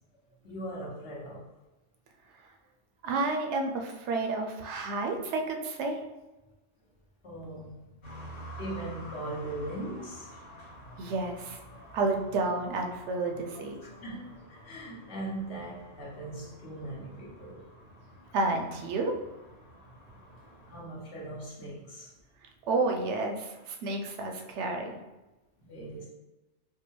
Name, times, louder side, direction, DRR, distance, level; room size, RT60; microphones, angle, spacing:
voice 1, 0.4-1.5 7.2-7.9 8.6-10.3 13.8-17.6 20.7-22.1 25.6-26.1, right 1 dB, 60° left, -6 dB, 1.3 m, -40 dB
voice 2, 3.0-6.0 11.0-11.6 11.9-13.8 18.3-19.1 22.7-25.0, right 3 dB, 70° right, 3 dB, 0.8 m, -30 dB
sound 1, 8.0-20.8, equal, 85° left, 1.5 m, -49 dB
4.6 x 2.1 x 3.0 m, 1.1 s
omnidirectional pair, 1.3 m